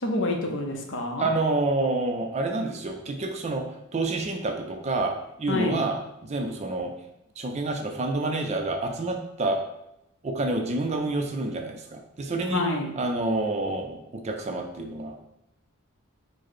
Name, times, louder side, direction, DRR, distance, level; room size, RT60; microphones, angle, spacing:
voice 1, 0.0-1.3 5.5-5.8 12.5-12.9, left 2 dB, 55° left, 2 dB, 0.6 m, -27 dB
voice 2, 1.2-3.6 3.9-6.0 6.2-6.9 7.4-9.6 10.2-12.7 13.0-15.2, right 2 dB, 30° right, 4 dB, 0.4 m, -28 dB
4.9 x 2.0 x 4.3 m, 0.86 s
head